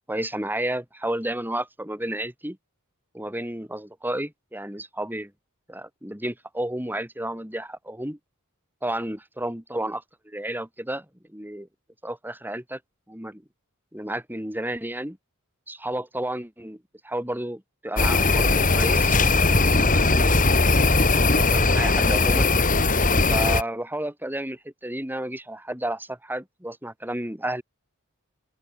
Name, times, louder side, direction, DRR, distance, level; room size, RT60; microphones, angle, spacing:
voice 1, 0.0-2.6 3.1-5.3 5.7-8.2 8.8-11.7 12.0-12.8 13.1-13.4 13.9-15.2 15.7-19.2 19.8-20.3 20.8-22.5 23.3-27.6, right 1 dB, 10° right, 6.0 m, -32 dB
sound 1, 18.0-23.6, left 3 dB, 40° left, 3.8 m, -19 dB
open air
head